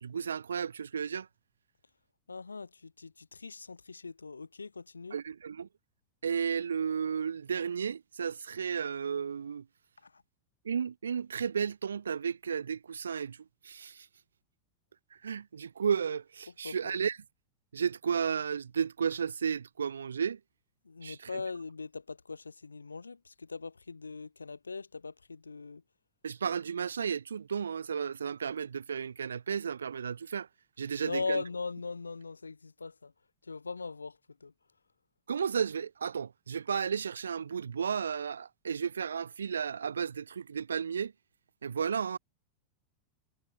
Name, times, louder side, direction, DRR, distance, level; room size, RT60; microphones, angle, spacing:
voice 1, 0.0-1.3 5.1-5.7 6.2-9.6 10.6-13.4 13.6-14.1 15.2-17.2 17.7-20.4 21.0-21.4 26.2-30.5 30.8-31.4 35.3-41.1 41.6-42.2, right 7 dB, 70° right, 0.9 m, -33 dB
voice 2, 2.3-5.2 10.0-10.2 16.6-17.0 20.8-25.8 31.0-33.1 33.4-34.5, left 4 dB, 75° left, 3.0 m, -40 dB
figure-of-eight pair, 90°, 0 cm